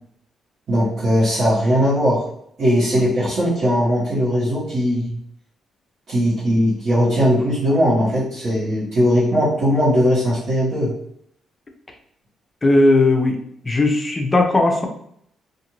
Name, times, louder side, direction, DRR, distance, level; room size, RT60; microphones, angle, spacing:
voice 1, 0.7-2.2 2.6-5.1 6.1-10.9, equal, 55° right, -10 dB, 1.2 m, -19 dB
voice 2, 12.6-13.4 13.6-14.9, left 2 dB, 20° left, 3 dB, 0.5 m, -16 dB
2.5 x 2.5 x 3.0 m, 0.71 s
cardioid pair, 120°, 0 cm